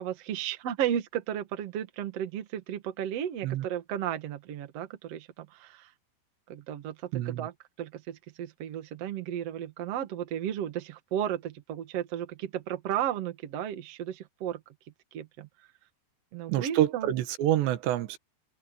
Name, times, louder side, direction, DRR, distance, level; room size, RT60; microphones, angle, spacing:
voice 1, 0.0-5.9 6.5-7.5 7.8-14.6 15.1-15.5 16.3-17.1, right 10 dB, 50° right, 2.1 m, -34 dB
voice 2, 7.1-7.5 16.5-18.2, right 13 dB, 90° right, 3.6 m, -27 dB
omnidirectional pair, 4.8 m